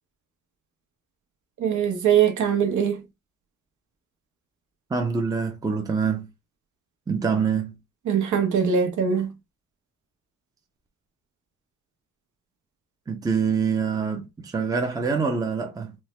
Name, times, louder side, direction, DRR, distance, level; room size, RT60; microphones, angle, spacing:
voice 1, 1.6-3.0 8.1-9.3, right 7 dB, 65° right, 1.0 m, -22 dB
voice 2, 4.9-6.3 7.1-7.8 13.1-16.0, right 5 dB, 10° right, 0.5 m, -25 dB
4.4 x 2.1 x 3.2 m
cardioid pair, 160°, 32 cm